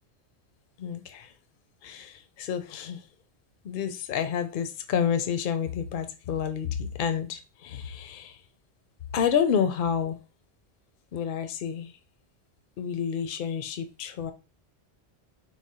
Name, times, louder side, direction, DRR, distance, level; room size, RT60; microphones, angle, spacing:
voice 1, 0.8-1.3 1.8-3.0 3.6-8.4 9.1-10.2 11.1-12.0 12.8-14.3, left 8 dB, 60° left, 0.7 m, -29 dB
4.8 x 2.1 x 4.1 m
omnidirectional pair, 1.1 m